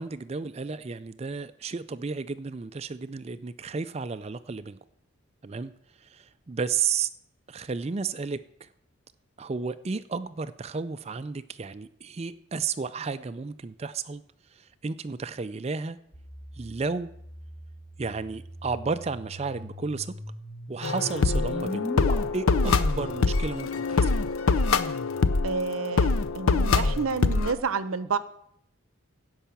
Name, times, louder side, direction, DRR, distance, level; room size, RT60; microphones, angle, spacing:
voice 1, 0.0-4.8 5.4-5.7 6.0-7.1 7.5-8.7 9.4-14.2 14.5-16.0 16.6-17.1 18.0-20.1 20.7-21.9 22.3-24.2, right 5 dB, 30° right, 0.4 m, -32 dB
sound 1, 16.1-22.1, left 1 dB, 30° left, 1.7 m, -39 dB
sound 2, 20.8-27.5, left 4 dB, 80° left, 0.6 m, -24 dB
voice 2, 25.4-28.2, right 5 dB, 80° right, 0.7 m, -29 dB
16.0 x 5.6 x 7.0 m
head